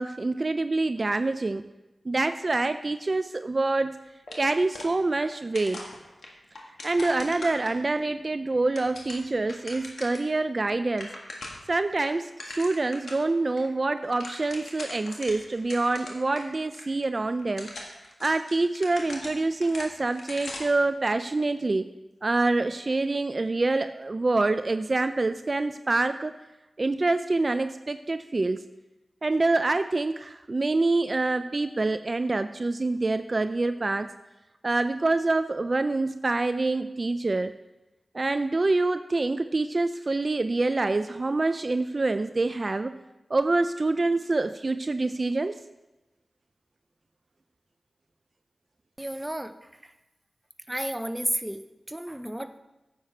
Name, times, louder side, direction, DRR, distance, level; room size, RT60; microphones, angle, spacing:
voice 1, 0.0-1.6 2.1-3.9 4.3-5.8 6.8-11.1 11.7-17.7 18.2-21.9 22.2-26.4 26.8-28.6 29.2-34.1 34.6-37.5 38.1-42.9 43.3-45.6, right 2 dB, 50° right, 10 dB, 0.3 m, -26 dB
sound 1, 4.3-5.3 5.5-8.0 8.5-10.3 10.6-10.7 10.9-11.7 12.0-13.2 13.6-13.7 14.0-16.4 16.7-16.8 17.4-20.8, left 2 dB, 80° left, 1.6 m, -41 dB
voice 2, 49.0-49.5 50.7-51.6 51.9-52.6, right 1 dB, 10° right, 10 dB, 0.7 m, -31 dB
9.6 x 7.2 x 4.4 m, 1.0 s
cardioid pair, 40°, 0 cm